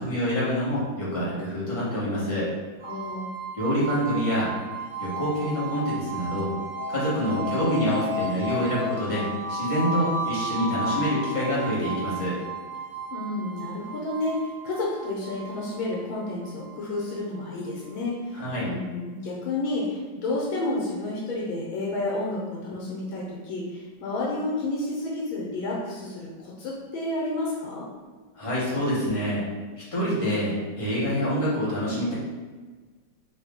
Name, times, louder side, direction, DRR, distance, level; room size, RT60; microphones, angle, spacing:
voice 1, 0.0-2.5 3.6-4.5 5.0-6.5 6.9-9.2 9.5-12.3 18.4-18.7 28.4-29.4 29.9-32.1, equal, 25° left, -8 dB, 0.7 m, -26 dB
voice 2, 2.8-3.3 13.1-27.8, left 2 dB, 80° left, -4 dB, 1.5 m, -30 dB
sound 1, 2.8-17.7, right 1 dB, 55° right, 1.1 m, -34 dB
3.2 x 3.1 x 3.5 m, 1.4 s
omnidirectional pair, 2.2 m